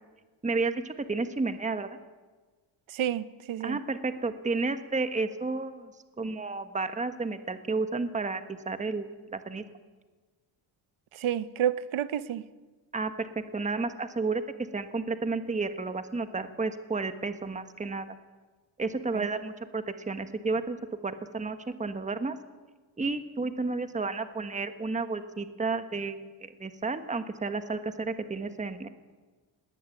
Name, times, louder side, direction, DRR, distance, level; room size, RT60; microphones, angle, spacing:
voice 1, 0.4-2.0 3.6-5.9 6.2-9.6 12.9-14.4 14.7-18.1 18.8-20.8 21.0-22.4 23.0-28.9, right 3 dB, 15° right, 1.3 m, -32 dB
voice 2, 2.9-3.8 11.1-12.5 19.1-19.3, right 10 dB, 80° right, 1.1 m, -30 dB
20.0 x 18.5 x 9.3 m
cardioid pair, 130°, 47 cm